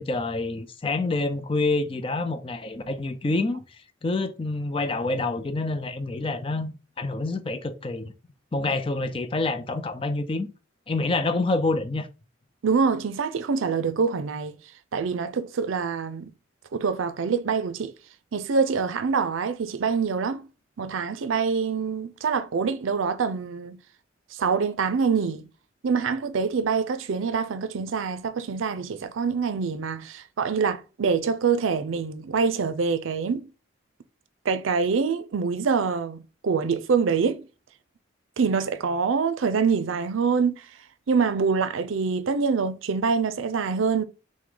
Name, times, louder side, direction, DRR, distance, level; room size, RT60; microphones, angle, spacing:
voice 1, 0.0-3.6 4.0-8.1 8.5-10.5 10.9-12.1, left 2 dB, 25° left, 0.4 m, -27 dB
voice 2, 12.6-14.6 14.9-16.3 16.7-17.9 18.3-20.5 20.8-23.8 24.3-25.5 25.8-33.5 34.4-37.5 38.4-40.7 41.1-44.0, right 5 dB, 85° right, 0.5 m, -25 dB
5.9 x 2.1 x 3.8 m
head